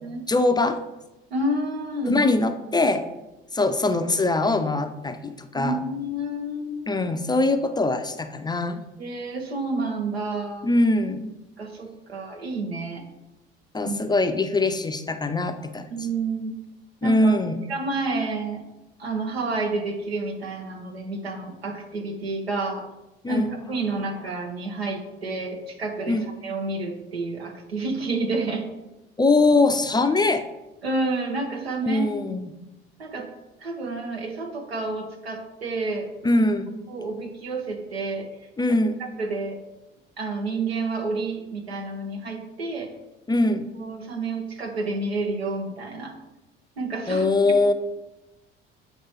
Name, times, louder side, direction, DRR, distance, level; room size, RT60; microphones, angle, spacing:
voice 1, 0.3-0.8 2.0-3.0 3.5-5.8 6.9-8.8 10.6-11.3 13.7-15.9 17.0-17.6 23.2-23.5 26.1-26.2 29.2-30.4 31.9-32.5 36.2-36.7 38.6-39.0 43.3-43.7 47.1-47.7, left 2 dB, 15° left, 8 dB, 0.4 m, -22 dB
voice 2, 1.3-2.2 5.5-6.9 9.0-10.7 11.6-13.0 13.8-14.2 15.9-16.5 17.0-17.3 17.7-18.6 19.0-22.8 23.3-28.6 30.8-32.1 33.0-33.3 33.6-36.4 36.9-38.3 38.7-39.6 40.2-42.9 43.8-46.1 46.8-47.3, right 2 dB, 85° right, 3 dB, 0.8 m, -30 dB
7.9 x 4.5 x 2.9 m, 1.0 s
figure-of-eight pair, 55°, 30 cm